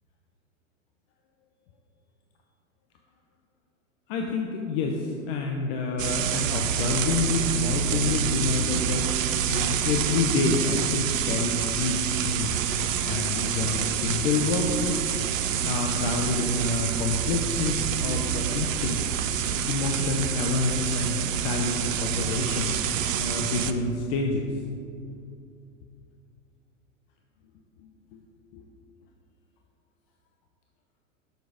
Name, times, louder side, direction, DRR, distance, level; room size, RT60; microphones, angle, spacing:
voice 1, 4.1-9.1 9.5-12.6 13.0-15.0 15.6-19.0 19.7-22.8 23.2-24.5 28.1-28.2 28.5-28.6, left 4 dB, 50° left, 1 dB, 0.8 m, -28 dB
sound 1, 6.0-23.7, right 8 dB, 75° right, 0.6 m, -27 dB
6.6 x 6.6 x 4.9 m, 2.5 s
hypercardioid pair, 100°, 39 cm